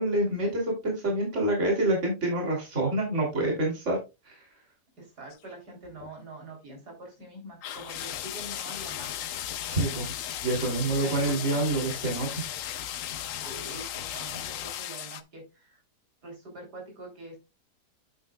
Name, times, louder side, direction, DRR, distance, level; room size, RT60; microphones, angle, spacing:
voice 1, 0.0-4.0 4.3-4.5 9.6-10.1 10.4-12.3, right 2 dB, 45° right, -1 dB, 3.4 m, -27 dB
voice 2, 5.0-9.3 10.5-12.0 13.4-15.8 16.2-17.4, right 2 dB, 75° right, 0 dB, 4.1 m, -45 dB
sound 1, 5.3-5.5 5.8-6.1 7.6-15.2, left 11 dB, 65° left, 0.9 m, -36 dB
9.2 x 8.2 x 2.3 m, 0.25 s
omnidirectional pair, 1.7 m